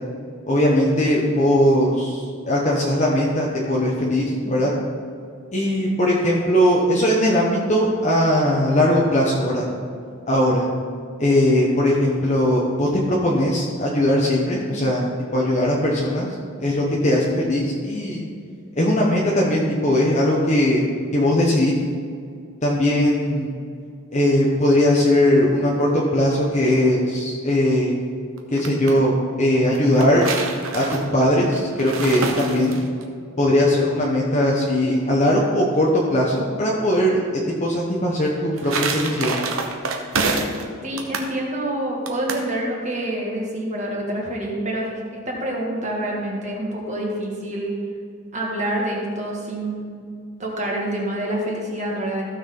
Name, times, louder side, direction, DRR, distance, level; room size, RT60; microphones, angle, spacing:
voice 1, 0.5-4.7 5.5-9.7 10.3-10.7 11.2-15.1 15.3-16.3 16.6-18.2 18.8-20.8 21.1-21.8 22.6-23.5 24.1-27.9 28.5-30.3 30.7-32.8 33.4-39.4, left 1 dB, 35° left, -4 dB, 1.1 m, -19 dB
sound 1, 28.4-28.9 29.7-33.0 38.2-40.6 41.0-41.3 42.1-42.5, right 4 dB, 80° right, 1.1 m, -27 dB
voice 2, 40.8-45.0 45.3-47.7 48.3-49.8 50.4-52.2, right 1 dB, 35° right, -2 dB, 2.0 m, -27 dB
15.0 x 6.4 x 3.9 m, 2.3 s
head